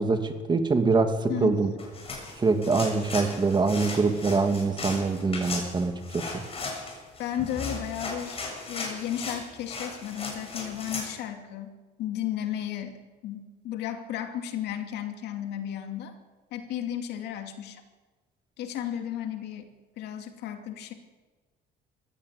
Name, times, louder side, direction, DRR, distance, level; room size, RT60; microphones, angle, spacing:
voice 1, 0.0-1.7 2.4-6.4, right 4 dB, 25° right, 7 dB, 2.3 m, -24 dB
sound 1, 1.8-11.1, left 3 dB, 35° left, 7.5 m, -37 dB
voice 2, 7.2-8.4 8.7-12.9 13.2-16.1 16.5-17.8 18.6-19.7 20.0-20.9, left 10 dB, 80° left, 6 dB, 2.5 m, -34 dB
20.5 x 16.0 x 8.2 m, 1.3 s
cardioid pair, 110°, 17 cm